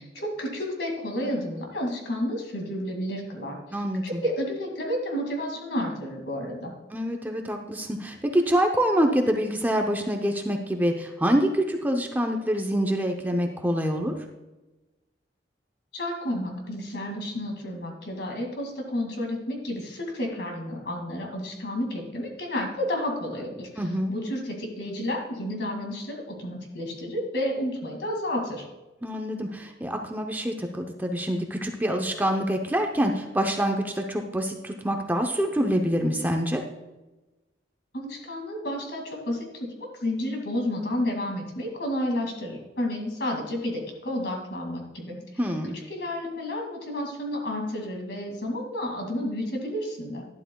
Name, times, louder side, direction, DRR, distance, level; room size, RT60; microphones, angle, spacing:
voice 1, 0.0-3.6 4.0-6.8 15.9-23.7 24.1-28.7 37.9-45.2 45.9-50.3, left 1 dB, 65° left, 1 dB, 2.2 m, -31 dB
voice 2, 3.7-4.2 6.9-14.1 23.8-24.1 29.0-36.6 45.4-45.8, equal, 10° right, 3 dB, 0.6 m, -26 dB
11.5 x 11.5 x 2.3 m, 1.1 s
head